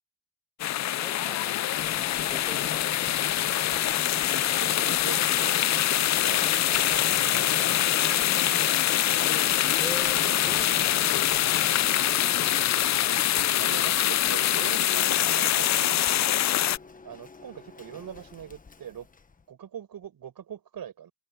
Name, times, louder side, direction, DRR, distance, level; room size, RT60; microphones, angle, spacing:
sound 1, 0.6-16.8, left 12 dB, 35° left, 0.5 m, -24 dB
voice 1, 1.0-1.7 2.3-3.5 9.8-11.0 11.4-12.5, equal, ahead, 5.9 m, -44 dB
Printer, 1.8-19.4, left 4 dB, 15° left, 1.1 m, -42 dB
voice 2, 4.6-8.9 13.6-16.6 17.0-19.1 19.5-21.1, right 9 dB, 45° right, 7.7 m, -43 dB
cardioid pair, 135°, 50 cm